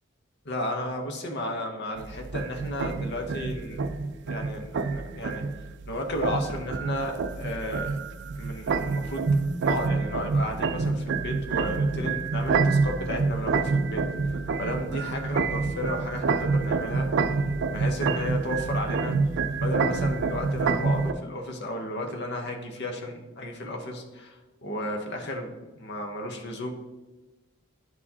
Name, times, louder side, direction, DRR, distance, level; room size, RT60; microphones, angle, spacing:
voice 1, 0.4-3.8 4.2-5.5 5.9-8.0 8.3-9.3 9.6-17.1 17.7-19.2 19.6-26.7, left 1 dB, 55° left, 3 dB, 0.9 m, -33 dB
sound 1, 2.0-21.1, right 4 dB, 55° right, 0.4 m, -27 dB
11.0 x 4.4 x 2.8 m, 1.2 s
head